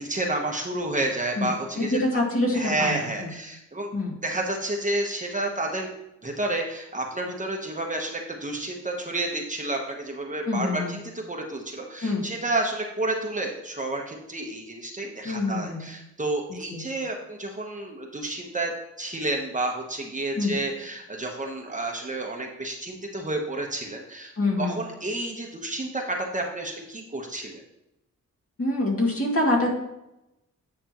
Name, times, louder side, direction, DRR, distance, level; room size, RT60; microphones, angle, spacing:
voice 1, 0.0-2.2 2.5-3.9 4.2-5.9 6.2-18.7 19.0-27.6, right 2 dB, 25° right, 1 dB, 1.1 m, -30 dB
voice 2, 1.4-3.3 3.9-4.2 10.5-11.0 12.0-12.3 15.2-15.9 16.7-16.8 20.4-20.5 24.4-24.8 28.6-29.7, left 2 dB, 45° left, -2 dB, 2.2 m, -26 dB
9.3 x 6.1 x 3.0 m, 0.88 s
cardioid pair, 95°, 31 cm